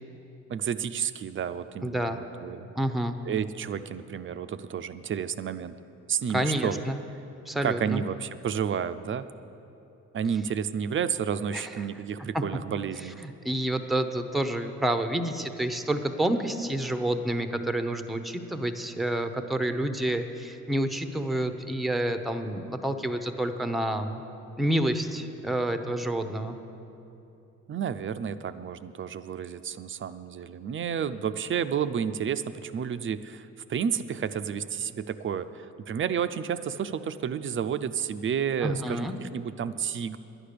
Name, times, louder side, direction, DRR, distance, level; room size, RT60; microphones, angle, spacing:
voice 1, 0.5-2.7 3.2-5.8 6.1-6.8 7.6-9.3 10.1-13.2 27.7-40.2, right 8 dB, 40° right, 12 dB, 0.5 m, -31 dB
voice 2, 1.8-2.2 2.8-3.2 6.3-7.0 7.5-8.0 11.5-11.7 12.3-12.4 13.2-24.2 24.6-26.6 38.6-39.1, right 1 dB, ahead, 8 dB, 0.7 m, -29 dB
11.0 x 10.0 x 6.7 m, 2.9 s
cardioid pair, 90°, 30 cm